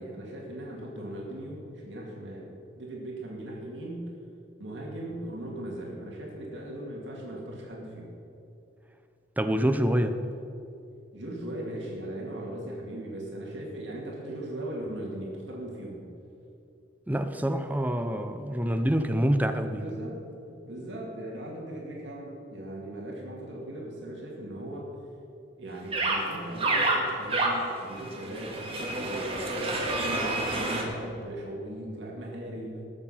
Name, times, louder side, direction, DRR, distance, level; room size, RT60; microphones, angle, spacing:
voice 1, 0.0-4.2 4.6-8.1 11.1-16.1 19.7-20.2 20.6-24.9 25.6-32.8, right 1 dB, 65° right, 2.4 m, -38 dB
voice 2, 9.4-10.2 17.1-19.8, equal, 10° right, 0.6 m, -26 dB
sound 1, 25.9-26.2 26.6-30.8, right 2 dB, 30° right, 1.9 m, -28 dB
20.0 x 7.3 x 5.7 m
head